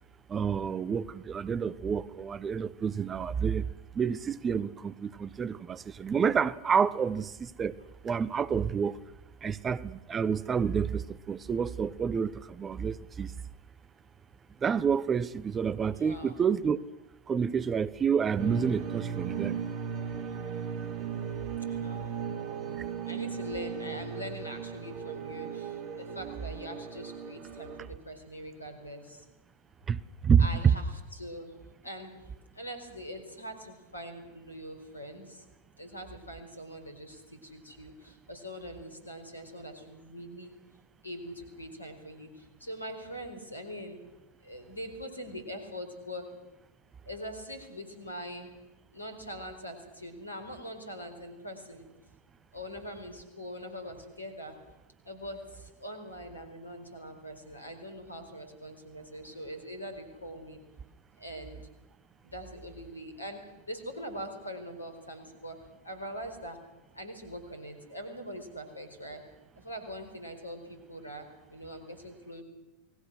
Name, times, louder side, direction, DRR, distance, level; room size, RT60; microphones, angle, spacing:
voice 1, 0.3-3.6 3.9-7.8 8.0-9.0 9.4-13.3 14.6-16.8 17.3-19.6 29.9-30.5, right 6 dB, 20° right, 0.8 m, -29 dB
voice 2, 15.9-16.4 21.7-29.2 30.4-31.5 31.8-32.2 32.5-35.4 35.8-40.5 41.0-44.0 44.4-46.3 47.1-48.5 48.9-51.9 52.5-54.6 55.0-60.6 61.2-61.6 62.2-63.4 63.7-66.6 66.9-69.2 69.6-72.4, equal, 80° left, 4.4 m, -43 dB
sound 1, 18.4-27.9, right 7 dB, 40° right, 2.5 m, -37 dB
29.0 x 20.0 x 6.4 m
figure-of-eight pair, 90°, 0 cm